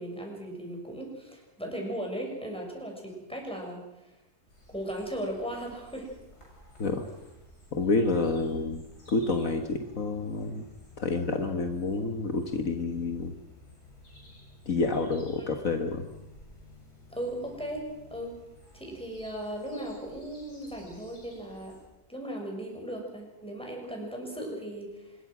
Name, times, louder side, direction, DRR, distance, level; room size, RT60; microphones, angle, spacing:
voice 1, 0.0-4.1 4.7-6.1 7.7-7.8 17.1-18.3 18.7-21.7 22.1-25.2, right 1 dB, 5° left, 0 dB, 6.5 m, -37 dB
sound 1, 4.5-21.8, left 1 dB, 80° left, 8.2 m, -53 dB
voice 2, 7.7-10.6 11.0-13.3 14.6-16.1, left 3 dB, 60° left, 5 dB, 1.8 m, -29 dB
26.0 x 21.5 x 6.2 m, 0.96 s
omnidirectional pair, 1.6 m